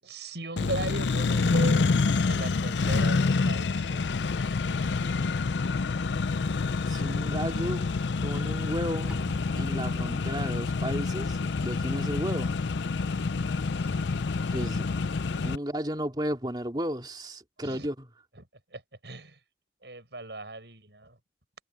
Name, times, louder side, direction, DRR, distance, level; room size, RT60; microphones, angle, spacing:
voice 1, 0.0-1.9 2.3-4.1 4.7-5.5 13.4-14.1 17.6-17.9 18.4-19.4 19.8-21.2, right 2 dB, 75° right, 7.5 m, -38 dB
Accelerating revving vroom, 0.6-15.6, left 4 dB, 85° left, 0.5 m, -27 dB
voice 2, 6.9-7.9 8.2-9.1 9.5-12.6 14.5-14.9 15.4-18.1, equal, 25° right, 3.0 m, -33 dB
Bowed string instrument, 9.1-14.7, equal, 5° right, 6.4 m, -47 dB
head